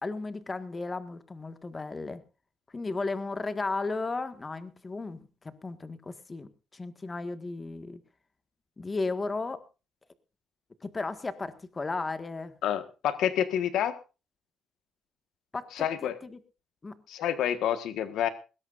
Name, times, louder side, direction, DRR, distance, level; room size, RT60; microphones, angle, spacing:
voice 1, 0.0-2.2 2.7-5.2 5.4-8.0 8.8-9.6 10.8-12.5 15.5-15.9 16.2-16.4 16.8-17.0, left 3 dB, 25° left, 10 dB, 1.7 m, -34 dB
voice 2, 12.6-13.9 15.7-16.2 17.1-18.3, left 10 dB, 75° left, 11 dB, 1.5 m, -28 dB
20.5 x 17.0 x 2.6 m, 0.32 s
cardioid pair, 110°, 0 cm